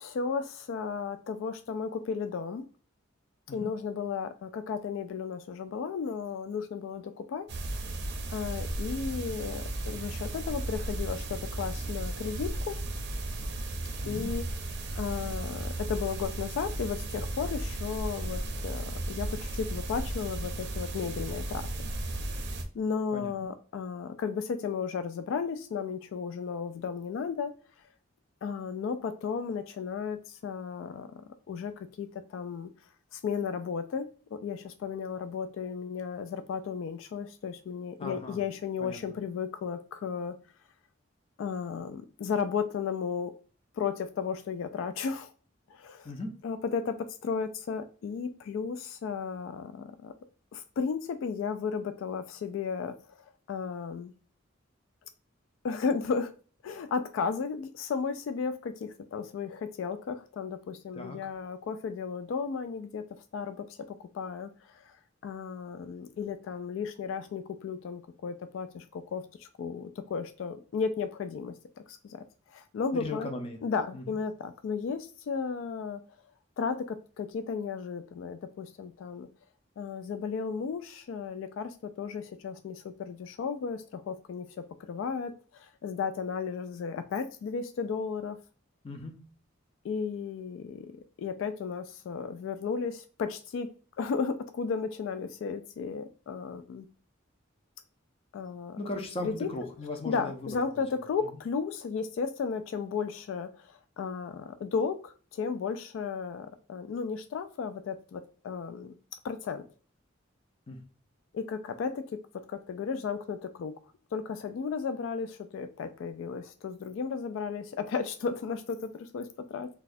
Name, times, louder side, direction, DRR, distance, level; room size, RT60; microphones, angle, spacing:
voice 1, 0.0-2.7 3.5-7.5 8.3-12.8 14.1-14.4 15.0-21.7 22.7-27.5 28.4-31.7 32.0-32.7 33.1-40.3 41.4-43.3 43.8-45.3 45.7-46.1 46.4-47.0 47.2-50.1 50.5-53.2 53.5-54.1 55.6-56.3 56.6-63.0 63.3-64.9 65.2-71.5 71.9-73.3 73.6-76.0 76.6-79.3 79.8-88.4 89.8-90.9 91.2-93.7 94.0-96.9 98.3-98.8 99.2-99.5 100.0-109.0 109.2-109.6 111.3-112.0 112.5-113.7 114.1-119.7, left 5 dB, 80° left, 0.3 m, -34 dB
sound 1, 7.5-22.6, right 1 dB, 60° right, 0.5 m, -35 dB
voice 2, 23.1-23.5 38.0-38.4 38.8-39.0 46.0-46.3 60.9-61.2 72.9-73.6 73.9-74.2 88.8-89.2 98.8-100.5 110.7-110.8, left 2 dB, 30° left, 0.5 m, -37 dB
4.0 x 2.3 x 2.6 m
head